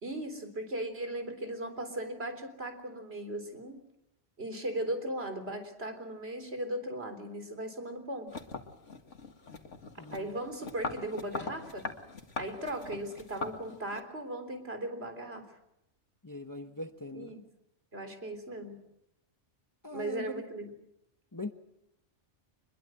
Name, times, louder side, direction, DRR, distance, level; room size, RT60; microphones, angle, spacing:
voice 1, 0.0-3.8 4.4-8.3 10.1-11.9 12.4-15.4 17.1-17.4 17.9-18.8 19.9-20.7, right 1 dB, 55° right, 7 dB, 4.0 m, -37 dB
sound 1, 8.3-14.0, left 3 dB, 80° left, 2.2 m, -41 dB
voice 2, 10.0-10.3 16.2-17.3 19.8-20.4 21.3-21.5, left 1 dB, 20° left, 7 dB, 1.0 m, -41 dB
24.5 x 21.5 x 7.8 m, 0.83 s
omnidirectional pair, 1.2 m